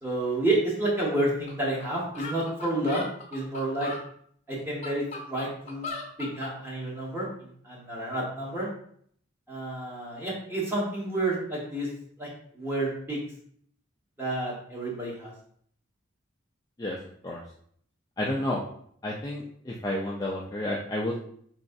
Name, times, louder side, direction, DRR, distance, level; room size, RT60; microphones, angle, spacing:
voice 1, 0.0-3.0 3.3-3.9 4.5-5.9 6.2-8.7 9.5-11.9 12.2-12.3 12.5-13.2 14.2-15.3, right 2 dB, 10° right, -5 dB, 1.2 m, -30 dB
sound 1, 1.5-1.6 1.8-1.9 2.1-4.0 4.6-6.5, left 3 dB, 35° left, 0.7 m, -38 dB
voice 2, 18.2-18.6 19.0-21.2, left 1 dB, 20° left, -3 dB, 0.4 m, -30 dB
4.7 x 3.1 x 2.6 m, 0.63 s
head